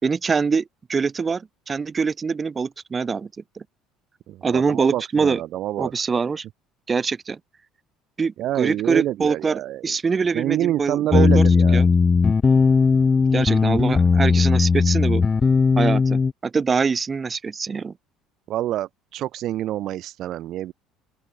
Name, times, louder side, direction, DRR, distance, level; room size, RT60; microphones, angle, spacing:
voice 1, 0.0-3.3 3.6-3.7 4.4-5.4 5.8-6.4 6.9-7.4 8.2-11.4 11.7-11.8 13.3-15.3 15.8-17.9, right 5 dB, 20° right, 3.0 m, -24 dB
voice 2, 4.3-5.9 8.4-9.9 10.3-11.8 18.5-20.7, right 13 dB, 50° right, 2.1 m, -27 dB
sound 1, 11.1-16.3, left 5 dB, 20° left, 0.5 m, -17 dB
open air
cardioid pair, 145°, 0 cm